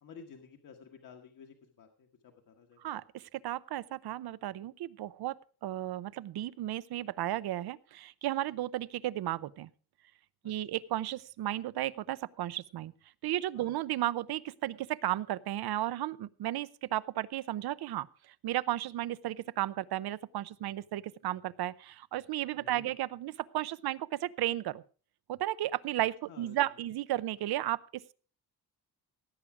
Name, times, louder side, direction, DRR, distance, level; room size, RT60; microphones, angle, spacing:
voice 1, 0.0-2.8 10.4-10.5 13.5-13.8 22.5-22.9 26.3-26.6, left 6 dB, 55° left, 3 dB, 1.4 m, -53 dB
voice 2, 2.8-5.4 5.6-9.7 10.4-12.9 13.2-24.8 25.3-28.1, right 14 dB, 80° right, 17 dB, 0.7 m, -34 dB
16.5 x 8.5 x 4.8 m, 0.39 s
wide cardioid pair, 170°, 37 cm